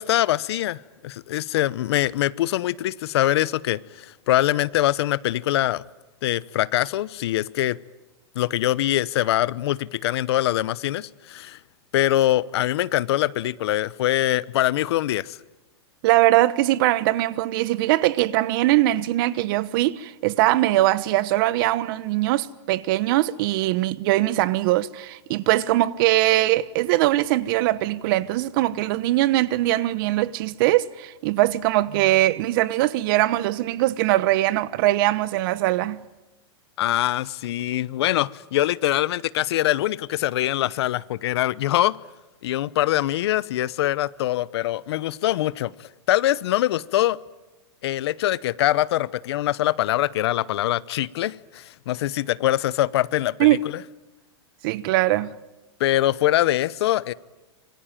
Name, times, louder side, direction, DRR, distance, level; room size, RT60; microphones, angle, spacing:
voice 1, 0.0-5.8 6.2-7.8 8.3-11.6 11.9-15.4 36.8-42.0 42.4-45.7 46.1-47.2 47.8-53.6 55.8-57.1, left 14 dB, 65° left, 0.9 m, -23 dB
voice 2, 16.0-36.0 53.4-53.6 54.6-55.4, right 16 dB, 50° right, 1.2 m, -21 dB
26.5 x 24.0 x 9.1 m
hypercardioid pair, 140°, 15 cm